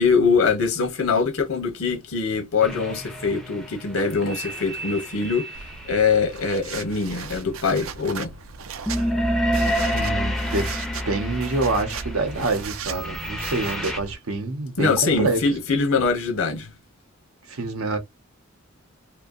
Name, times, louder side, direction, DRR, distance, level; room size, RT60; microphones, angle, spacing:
voice 1, 0.0-5.5 5.8-8.3 14.8-16.7, left 5 dB, 80° left, 0.8 m, -23 dB
sound 1, 2.6-6.2 8.9-14.0, equal, ahead, 0.4 m, -28 dB
sound 2, 5.6-14.2, right 6 dB, 70° right, 0.4 m, -37 dB
voice 2, 9.9-10.7 11.0-15.4 17.5-18.0, right 3 dB, 85° right, 0.8 m, -26 dB
2.6 x 2.2 x 2.5 m
head